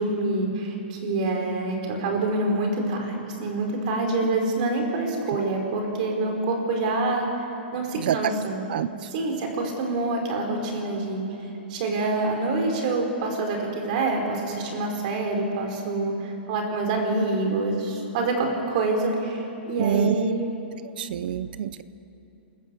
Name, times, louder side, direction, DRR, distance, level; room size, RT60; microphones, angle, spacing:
voice 1, 0.0-7.3 7.7-8.6 9.1-11.2 11.7-20.5, right 2 dB, 40° right, 2 dB, 4.6 m, -26 dB
voice 2, 8.0-8.3 8.7-9.1 19.8-20.2 21.0-21.8, right 10 dB, 55° right, 15 dB, 0.7 m, -26 dB
28.5 x 13.5 x 8.5 m, 2.9 s
hypercardioid pair, 165°, 6 cm